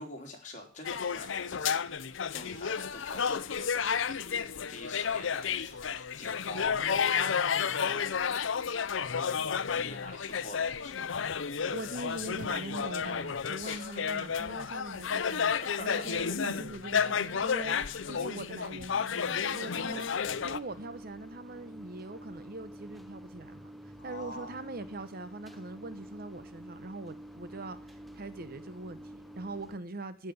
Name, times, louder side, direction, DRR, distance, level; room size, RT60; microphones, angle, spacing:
voice 1, 0.0-1.8 2.3-8.2 9.6-11.0 13.6-14.3 15.4-16.0 17.8-18.3 19.3-20.0 24.0-24.6, left 2 dB, 40° left, 3.5 m, -47 dB
sound 1, 0.8-20.6, left 6 dB, 80° left, 0.7 m, -32 dB
voice 2, 11.6-17.8 18.1-20.1 20.4-23.7 24.0-30.3, right 2 dB, 50° right, 0.9 m, -42 dB
sound 2, 20.2-29.8, right 1 dB, ahead, 0.7 m, -48 dB
15.5 x 6.0 x 8.2 m
head